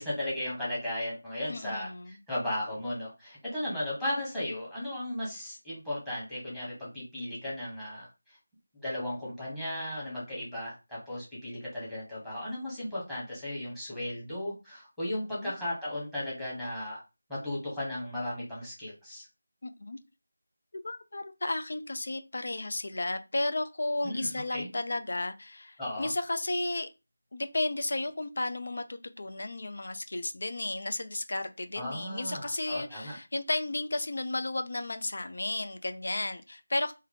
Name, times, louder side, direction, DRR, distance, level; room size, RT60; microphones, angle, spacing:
voice 1, 0.0-8.1 8.8-17.0 17.3-19.3 24.0-24.7 25.8-26.1 31.7-33.2, left 1 dB, 5° left, -8 dB, 1.4 m, -35 dB
voice 2, 1.5-2.2 15.3-15.5 19.6-20.0 20.8-26.9 27.3-36.9, left 2 dB, 55° left, 9 dB, 0.6 m, -33 dB
3.5 x 2.8 x 3.6 m, 0.27 s
figure-of-eight pair, 165°, 0 cm